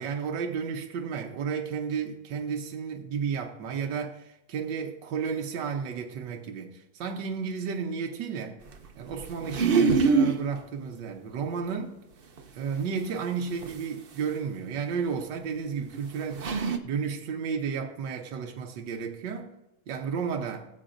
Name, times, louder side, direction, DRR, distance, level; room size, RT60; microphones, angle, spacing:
voice 1, 0.0-8.6 9.0-11.9 12.5-16.5 16.8-19.5 19.9-20.7, right 6 dB, 75° right, 1.5 m, -32 dB
sound 1, 9.2-10.4 12.4-12.5 13.6-13.7 15.2-15.3 15.9-16.0 16.3-16.8, right 4 dB, 55° right, 0.6 m, -23 dB
17.5 x 7.7 x 2.6 m
omnidirectional pair, 2.0 m